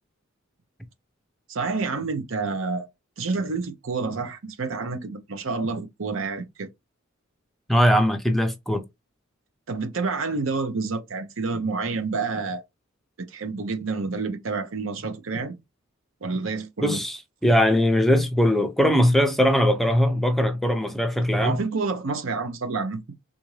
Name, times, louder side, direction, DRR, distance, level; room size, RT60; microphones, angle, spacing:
voice 1, 1.5-2.9 3.2-6.7 9.7-12.6 13.3-15.5 16.2-17.0 21.4-23.0, right 4 dB, 65° right, 0.7 m, -28 dB
voice 2, 7.7-8.9 16.8-21.6, equal, ahead, 0.5 m, -20 dB
3.5 x 2.6 x 3.1 m
head